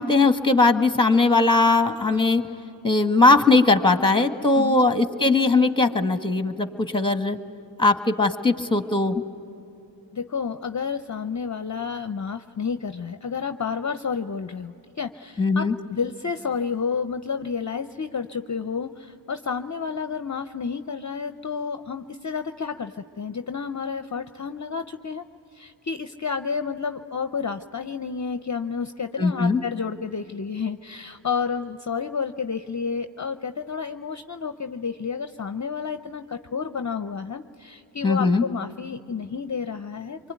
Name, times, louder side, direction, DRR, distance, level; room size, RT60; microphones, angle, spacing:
voice 1, 0.0-2.4 2.8-7.4 7.8-9.2 15.4-15.7 29.2-29.6 38.0-38.4, left 3 dB, 10° left, 8 dB, 1.5 m, -19 dB
voice 2, 10.1-15.6 15.9-25.2 25.5-40.3, left 6 dB, 40° left, 9 dB, 0.7 m, -30 dB
25.5 x 24.5 x 9.4 m, 3.0 s
wide cardioid pair, 60°, 46 cm